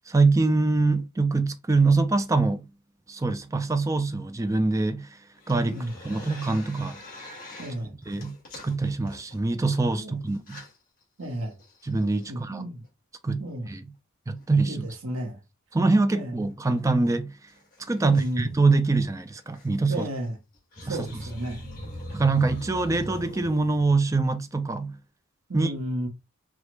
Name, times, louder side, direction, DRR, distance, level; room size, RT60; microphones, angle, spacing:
voice 1, 0.1-2.6 3.1-5.1 5.5-5.7 6.0-7.0 8.1-8.3 8.6-10.6 11.8-12.6 13.2-13.9 14.3-14.9 15.7-17.3 17.9-20.0 20.9-21.1 22.1-25.0 25.5-25.7, right 3 dB, 15° right, 0.3 m, -24 dB
sound 1, 5.4-7.8 8.0-9.8 10.4-10.7 11.3-11.4 11.6-12.3 14.4-14.6 16.4-16.5 16.8-16.9 17.0-17.1 17.5-18.3 19.4-19.7 20.5-24.0, left 1 dB, 40° left, 2.0 m, -42 dB
voice 2, 7.6-7.9 9.9-10.2 11.2-11.5 12.3-12.8 13.4-13.7 14.6-15.4 16.1-16.3 18.0-18.5 19.9-20.4 20.8-21.6 25.5-26.1, right 1 dB, 85° right, 1.3 m, -32 dB
4.9 x 2.4 x 3.1 m
head